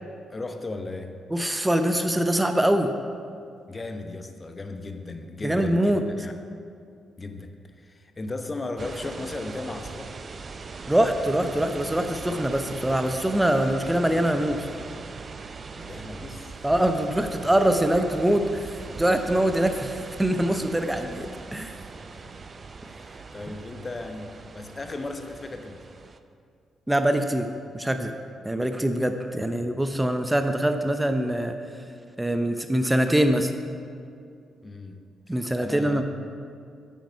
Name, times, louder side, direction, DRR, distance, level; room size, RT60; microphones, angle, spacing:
voice 1, 0.3-1.1 3.7-6.4 7.2-10.1 15.8-16.7 22.1-22.5 22.9-25.8 29.4-29.6 34.6-35.0 35.3-36.0, left 2 dB, 30° left, 6 dB, 0.9 m, -36 dB
voice 2, 1.3-2.9 5.4-6.1 10.9-14.7 16.6-21.3 21.5-21.7 26.9-27.5 27.7-28.1 28.4-31.6 32.2-33.5 35.3-36.0, right 1 dB, 10° right, 7 dB, 0.8 m, -23 dB
sound 1, 8.8-26.2, right 4 dB, 40° right, 0.6 m, -40 dB
9.3 x 9.2 x 5.7 m, 2.4 s
figure-of-eight pair, 40°, 0 cm